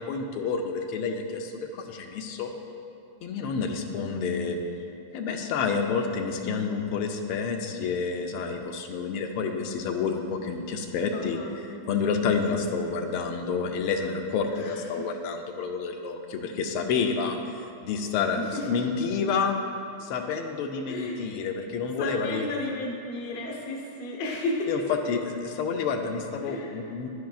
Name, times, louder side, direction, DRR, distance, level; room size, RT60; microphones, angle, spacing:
voice 1, 0.0-2.5 3.2-4.6 5.1-11.4 11.9-17.4 17.8-19.6 20.0-22.5 24.7-24.8 25.1-27.1, left 5 dB, 85° left, 3 dB, 1.5 m, -29 dB
voice 2, 11.1-11.5 12.5-12.7 14.6-15.1 16.4-16.5 18.3-18.9 20.9-21.2 22.0-24.7 26.4-26.9, left 2 dB, 45° left, -1 dB, 0.8 m, -34 dB
10.5 x 9.1 x 2.3 m, 2.7 s
omnidirectional pair, 2.4 m